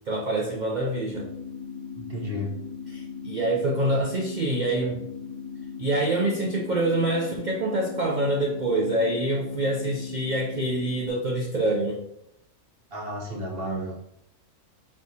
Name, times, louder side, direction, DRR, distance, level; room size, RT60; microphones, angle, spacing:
voice 1, 0.1-1.3 2.9-5.0 5.8-12.0, right 1 dB, 75° right, -1 dB, 0.4 m, -26 dB
sound 1, 1.1-11.1, left 6 dB, 80° left, 1.0 m, -38 dB
voice 2, 2.0-2.6 12.9-14.0, equal, 45° right, -2 dB, 1.1 m, -32 dB
4.5 x 4.3 x 2.7 m, 0.82 s
omnidirectional pair, 1.6 m